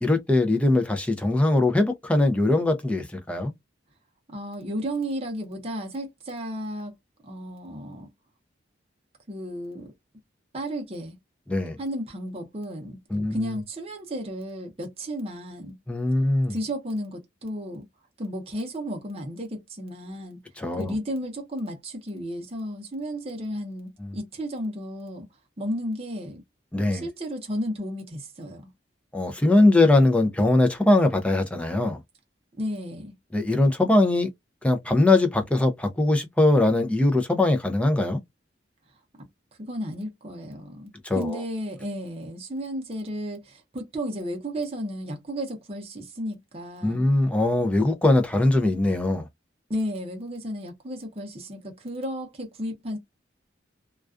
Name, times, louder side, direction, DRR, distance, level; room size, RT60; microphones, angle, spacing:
voice 1, 0.0-3.5 11.5-11.8 13.1-13.6 15.9-16.5 20.6-20.9 24.0-24.1 26.7-27.1 29.1-32.0 33.3-34.3 34.6-38.2 41.0-41.4 46.8-49.3, left 2 dB, 5° left, 0.4 m, -21 dB
voice 2, 4.3-6.9 7.2-8.1 9.3-9.9 10.5-11.2 11.8-13.0 13.3-15.7 16.5-17.8 18.2-20.4 20.8-25.3 25.6-26.4 26.9-28.7 32.6-33.1 39.6-47.1 49.7-53.0, equal, 30° right, 0.6 m, -33 dB
2.3 x 2.3 x 2.3 m
head